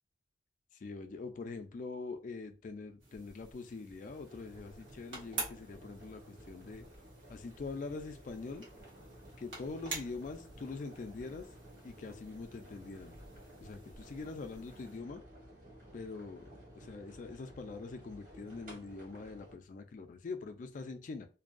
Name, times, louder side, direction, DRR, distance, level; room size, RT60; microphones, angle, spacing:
voice 1, 0.8-6.2 6.5-6.9 7.3-8.7 9.4-11.5 11.8-13.2 13.6-15.2 15.9-21.3, left 3 dB, 45° left, 7 dB, 0.3 m, -44 dB
sound 1, 3.0-15.0, right 3 dB, 90° right, 1.1 m, -48 dB
sound 2, 4.0-19.5, equal, 50° right, 1.0 m, -55 dB
2.6 x 2.2 x 2.4 m, 0.34 s
head